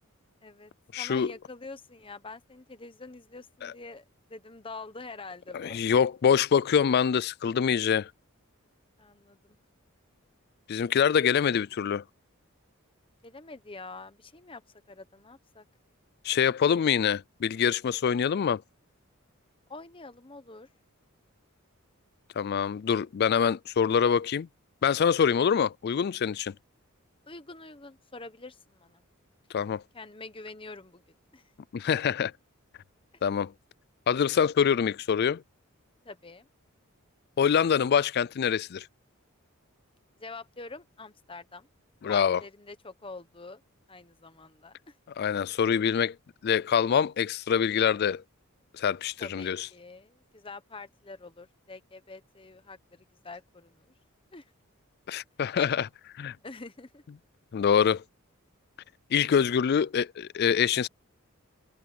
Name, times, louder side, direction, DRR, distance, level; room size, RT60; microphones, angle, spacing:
voice 1, 0.4-0.7 1.0-4.0 4.3-6.0 9.0-9.6 13.2-14.6 14.9-15.6 19.7-20.7 27.2-29.0 29.9-31.0 31.3-31.4 36.0-36.5 40.2-41.7 42.1-43.6 43.9-44.9 49.2-53.9 54.3-54.5 56.4-57.0, left 3 dB, 25° left, 1.1 m, -45 dB
voice 2, 0.9-1.3 3.6-3.7 5.5-8.1 10.7-12.0 16.2-18.6 22.4-24.5 24.8-26.5 29.5-29.8 31.7-32.3 33.2-33.5 34.1-35.4 37.4-38.9 42.0-42.4 45.2-46.2 46.4-48.2 48.7-49.7 55.1-55.9 56.2-56.4 57.5-58.0 59.1-60.9, left 7 dB, 45° left, 0.3 m, -25 dB
head